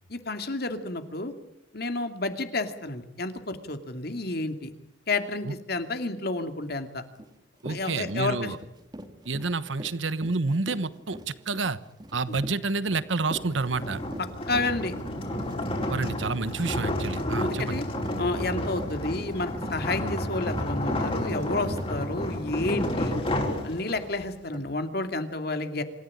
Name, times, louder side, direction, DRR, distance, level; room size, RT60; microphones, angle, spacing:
voice 1, 0.1-1.3 1.7-4.7 5.1-7.0 7.7-8.5 12.3-12.4 14.5-14.9 17.4-17.9 18.2-23.2 23.6-25.8, left 2 dB, 55° left, 8 dB, 2.6 m, -30 dB
Run, 7.2-7.3 7.6-23.6 23.9-24.1 24.5-24.7, equal, 25° right, 2.6 m, -42 dB
voice 2, 7.6-8.6 9.3-11.2 11.5-11.8 12.1-14.0 15.7-17.8, right 3 dB, 85° right, 15 dB, 1.2 m, -29 dB
sound 1, 13.3-24.2, left 1 dB, 30° left, 4.8 m, -31 dB
27.0 x 14.5 x 10.0 m, 0.83 s
head